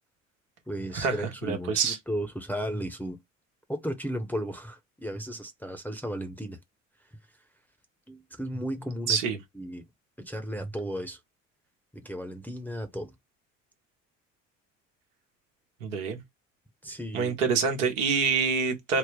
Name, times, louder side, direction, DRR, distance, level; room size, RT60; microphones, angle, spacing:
voice 1, 0.7-3.2 3.7-6.6 8.1-9.2 9.5-9.8 10.2-11.2 11.9-13.1 16.8-17.4, equal, 5° left, 0.8 m, -34 dB
voice 2, 1.4-2.0 9.1-9.4 15.8-16.2 17.1-19.0, right 5 dB, 80° right, 1.1 m, -26 dB
3.8 x 2.0 x 3.3 m
hypercardioid pair, 55°, 38 cm